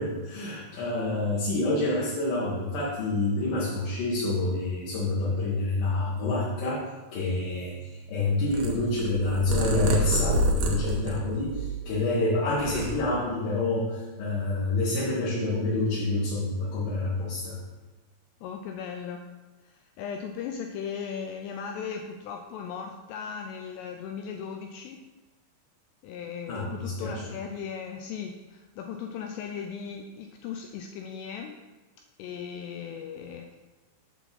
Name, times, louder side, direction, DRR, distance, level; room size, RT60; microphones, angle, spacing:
voice 1, 0.0-6.8 7.1-17.6 26.5-27.2, left 2 dB, 60° left, -7 dB, 2.6 m, -28 dB
Purr, 8.5-12.0 12.4-13.5, equal, 75° right, 2.3 m, -28 dB
voice 2, 18.4-19.2 19.6-25.0 26.0-31.6 32.2-33.6, left 7 dB, 85° left, 3 dB, 2.5 m, -37 dB
8.4 x 3.9 x 7.0 m, 1.2 s
omnidirectional pair, 5.3 m